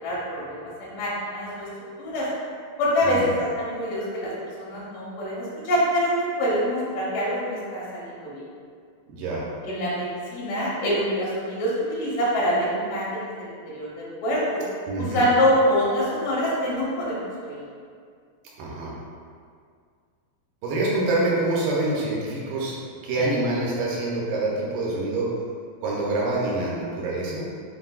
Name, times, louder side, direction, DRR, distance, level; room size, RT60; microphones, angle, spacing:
voice 1, 0.0-1.7 2.0-2.3 2.8-4.3 4.6-6.1 6.4-8.4 9.6-14.6 15.0-17.6, equal, 70° left, -7 dB, 2.5 m, -25 dB
voice 2, 9.1-9.4 14.9-15.3 18.6-18.9 20.6-22.8 23.0-25.3 25.8-27.5, right 2 dB, 80° right, -4 dB, 2.2 m, -26 dB
7.6 x 2.6 x 2.3 m, 2.1 s
omnidirectional pair, 4.2 m